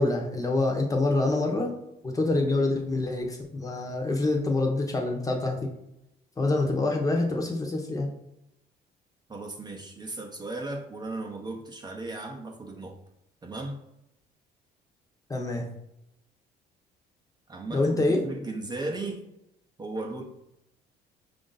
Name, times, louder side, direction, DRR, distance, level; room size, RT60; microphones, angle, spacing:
voice 1, 0.0-1.7 2.0-5.7 6.4-8.1 15.3-15.7 17.7-18.2, left 2 dB, 20° left, 1 dB, 0.8 m, -26 dB
voice 2, 9.3-13.0 13.4-13.8 17.5-19.2 19.8-20.2, right 2 dB, 25° right, 1 dB, 0.7 m, -36 dB
5.0 x 2.5 x 3.9 m, 0.84 s
cardioid pair, 110°, 17 cm